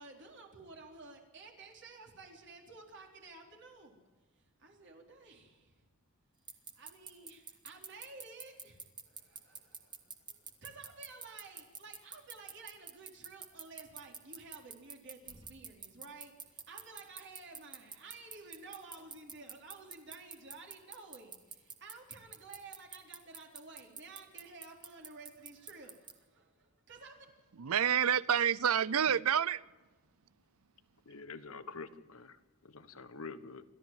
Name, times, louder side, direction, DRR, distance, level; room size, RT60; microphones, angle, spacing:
voice 1, 0.0-4.0 4.6-5.9 6.7-27.3, right 3 dB, 55° right, 3.9 m, -53 dB
sound 1, 6.5-26.1, right 6 dB, 20° right, 1.7 m, -46 dB
voice 2, 27.6-29.6, right 8 dB, 75° right, 0.6 m, -28 dB
voice 3, 31.0-33.6, left 4 dB, 70° left, 1.4 m, -47 dB
29.0 x 13.5 x 7.6 m
head